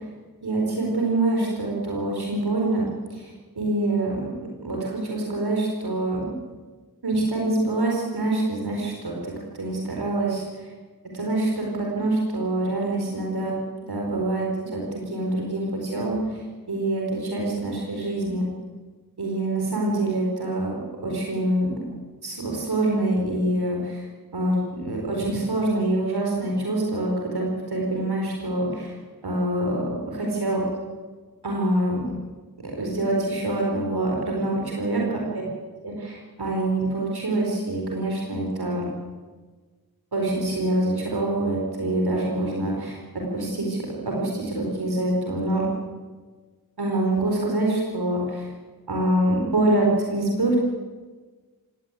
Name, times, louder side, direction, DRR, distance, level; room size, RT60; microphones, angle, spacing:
voice 1, 0.4-2.8 3.1-3.3 3.6-4.2 4.6-6.3 7.0-9.2 9.6-10.4 11.1-13.6 13.9-16.4 16.7-18.4 19.2-20.7 21.0-21.7 22.2-24.0 24.3-28.9 29.2-30.6 31.4-32.1 32.6-35.2 35.8-38.8 40.1-45.6 46.8-48.5 48.9-50.6, right 1 dB, 85° right, -1 dB, 4.6 m, -25 dB
19.0 x 17.0 x 9.2 m, 1.4 s
cardioid pair, 45°, 37 cm